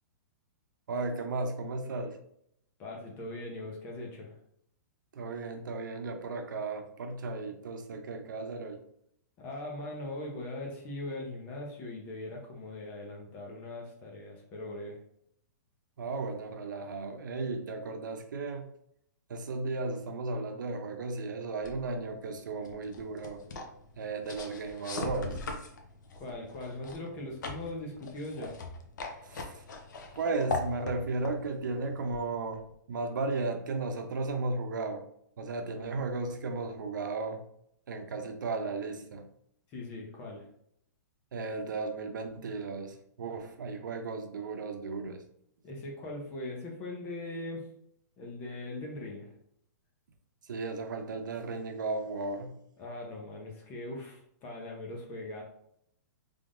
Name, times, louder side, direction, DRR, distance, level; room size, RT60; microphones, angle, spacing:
voice 1, 0.9-2.2 5.1-8.8 16.0-18.7 19.3-23.4 24.0-25.4 29.2-29.6 30.1-32.6 32.9-35.0 35.4-37.4 37.9-39.3 41.3-45.2 50.5-52.6, right 3 dB, 90° right, 5 dB, 0.7 m, -35 dB
voice 2, 2.8-4.4 9.4-15.0 26.1-28.6 39.7-40.5 45.6-47.7 48.2-49.3 52.8-55.4, left 2 dB, 15° left, -1 dB, 0.7 m, -40 dB
sound 1, 21.6-32.7, left 3 dB, 75° left, 0.7 m, -41 dB
3.6 x 3.4 x 2.5 m, 0.71 s
hypercardioid pair, 175°, 10 cm